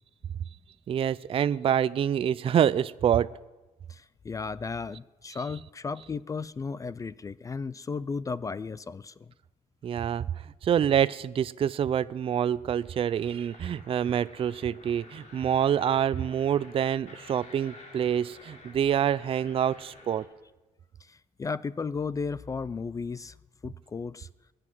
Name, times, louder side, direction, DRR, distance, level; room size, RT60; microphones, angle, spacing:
voice 1, 0.9-3.3 9.8-10.3 10.6-20.2, right 9 dB, 40° right, 0.4 m, -26 dB
voice 2, 3.9-9.3 21.1-23.4 23.6-24.3, left 4 dB, 25° left, 0.4 m, -35 dB
sound 1, 12.1-20.3, left 2 dB, 60° left, 3.2 m, -51 dB
21.5 x 7.8 x 6.1 m
cardioid pair, 105°, 14 cm